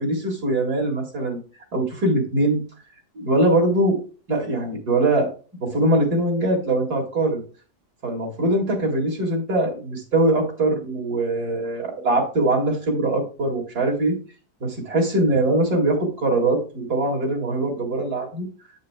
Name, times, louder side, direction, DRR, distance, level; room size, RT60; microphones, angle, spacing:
voice 1, 0.0-1.4 1.7-2.6 3.1-4.0 4.3-5.3 5.6-7.4 8.0-14.2 14.6-18.5, right 2 dB, 65° right, -1 dB, 2.7 m, -22 dB
8.4 x 7.7 x 2.2 m, 0.36 s
omnidirectional pair, 1.8 m